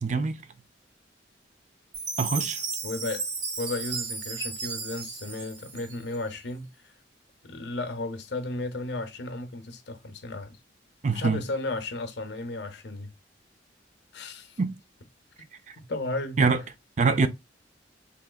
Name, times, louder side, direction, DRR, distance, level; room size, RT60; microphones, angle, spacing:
voice 1, 0.0-0.4 2.2-2.6 11.0-11.4 14.6-14.7 15.7-15.8 16.4-16.6 17.0-17.3, right 4 dB, 40° right, 0.4 m, -24 dB
Chime, 1.9-6.3, right 4 dB, 75° right, 1.3 m, -34 dB
voice 2, 2.8-3.3 3.6-6.9 7.4-10.6 11.1-13.1 14.1-14.6 15.8-16.4, left 2 dB, 70° left, 0.7 m, -34 dB
3.5 x 3.0 x 2.2 m
head